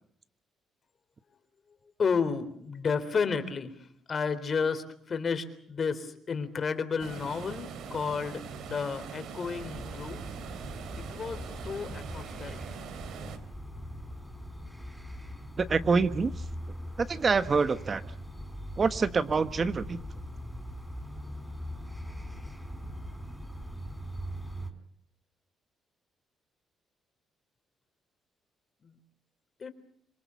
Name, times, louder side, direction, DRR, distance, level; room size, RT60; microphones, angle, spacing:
voice 1, 2.0-10.2 11.1-12.6 28.8-28.9 29.6-29.7, left 5 dB, 45° left, 11 dB, 3.7 m, -32 dB
sound 1, 7.0-13.4, right 6 dB, 75° right, 3.3 m, -42 dB
sound 2, 9.6-24.7, equal, 5° right, 4.6 m, -41 dB
voice 2, 15.6-16.3 17.0-18.0 18.8-20.0, right 4 dB, 40° right, 12 dB, 1.3 m, -26 dB
26.5 x 22.5 x 7.1 m, 0.66 s
cardioid pair, 90°, 0 cm